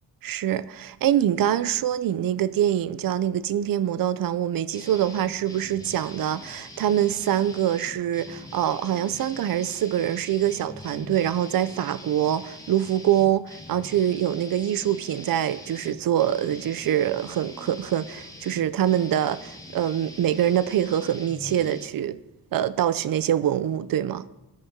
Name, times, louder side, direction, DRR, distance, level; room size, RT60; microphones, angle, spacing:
voice 1, 0.2-22.2 22.5-24.3, right 11 dB, 60° right, 0.5 m, -24 dB
sound 1, 4.7-21.9, left 2 dB, 10° left, 1.0 m, -43 dB
16.5 x 5.6 x 3.6 m
wide cardioid pair, 145°, 40 cm